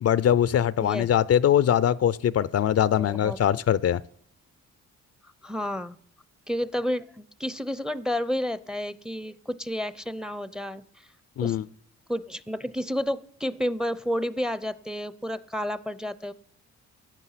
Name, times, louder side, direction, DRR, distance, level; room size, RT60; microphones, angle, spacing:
voice 1, 0.0-4.0 11.4-11.6, left 10 dB, 55° left, 18 dB, 0.5 m, -22 dB
voice 2, 3.0-3.4 5.4-6.0 6.5-10.8 11.4-11.6 12.1-16.3, equal, ahead, 17 dB, 0.6 m, -30 dB
14.5 x 8.9 x 5.7 m, 0.65 s
cardioid pair, 75°, 30 cm